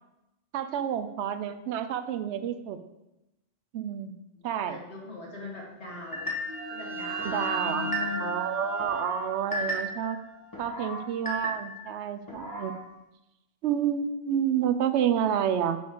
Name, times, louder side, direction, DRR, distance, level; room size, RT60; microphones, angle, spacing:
voice 1, 0.5-2.8 3.7-4.8 7.2-7.9 8.2-10.2 10.6-12.8 13.6-15.8, right 9 dB, 70° right, 10 dB, 0.8 m, -29 dB
voice 2, 4.4-6.3 6.7-8.3, left 3 dB, 60° left, -3 dB, 2.0 m, -39 dB
sound 1, 6.0-11.5, right 4 dB, 90° right, 1.7 m, -36 dB
sound 2, 6.1-6.7 7.2-8.4 8.8-10.1 10.5-11.9 12.3-12.8, equal, 15° left, 1.2 m, -35 dB
6.9 x 5.3 x 3.8 m, 0.93 s
omnidirectional pair, 1.3 m